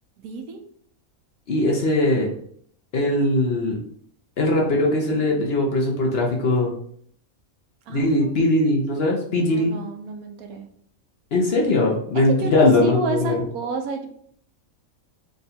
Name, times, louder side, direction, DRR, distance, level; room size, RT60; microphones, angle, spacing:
voice 1, 0.2-0.6 7.9-8.1 8.4-8.6 9.4-10.7 12.4-14.1, right 4 dB, 85° right, 5 dB, 1.1 m, -31 dB
voice 2, 1.5-2.3 2.9-3.8 4.4-6.7 7.9-9.7 11.3-13.4, left 2 dB, 55° left, -1 dB, 0.8 m, -20 dB
3.7 x 2.3 x 4.0 m, 0.63 s
omnidirectional pair, 1.5 m